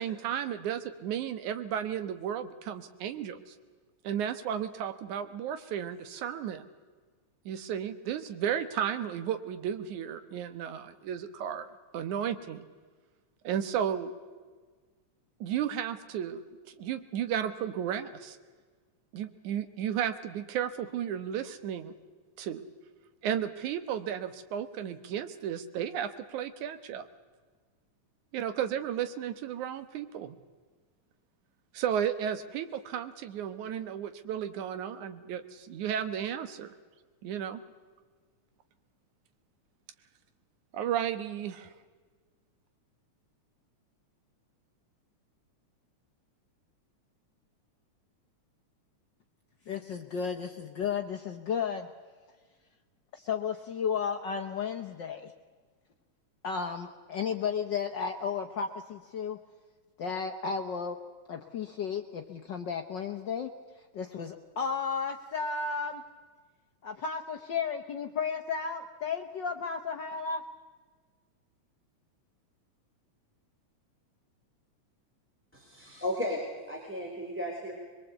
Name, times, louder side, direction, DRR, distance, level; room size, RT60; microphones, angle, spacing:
voice 1, 0.0-3.6 4.0-6.6 7.5-11.7 11.9-12.6 13.4-14.1 15.4-16.4 16.8-18.4 19.1-21.9 22.4-22.6 23.2-27.0 28.3-30.4 31.7-36.7 37.2-37.6 40.7-41.7, right 9 dB, 75° right, 10 dB, 2.6 m, -33 dB
voice 2, 49.7-51.9 53.1-55.3 56.4-59.4 60.0-61.0 61.3-63.5 63.9-66.0 66.8-70.4, left 6 dB, 75° left, 5 dB, 1.0 m, -33 dB
voice 3, 75.5-76.4 76.7-77.8, left 1 dB, 5° right, -2 dB, 3.3 m, -34 dB
23.0 x 22.0 x 8.1 m, 1.5 s
omnidirectional pair, 3.5 m